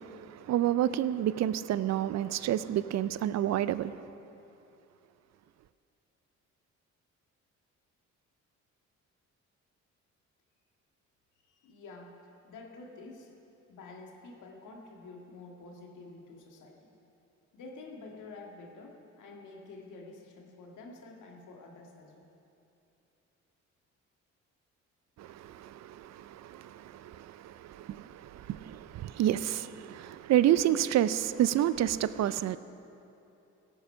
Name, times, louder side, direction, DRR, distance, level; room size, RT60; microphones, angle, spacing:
voice 1, 0.0-4.0 25.2-32.6, right 12 dB, 60° right, 0.5 m, -29 dB
voice 2, 11.4-12.2 12.4-13.3 13.7-16.9 17.5-22.3, left 3 dB, 80° left, 1.9 m, -49 dB
16.5 x 9.2 x 5.6 m
cardioid pair, 90°, 30 cm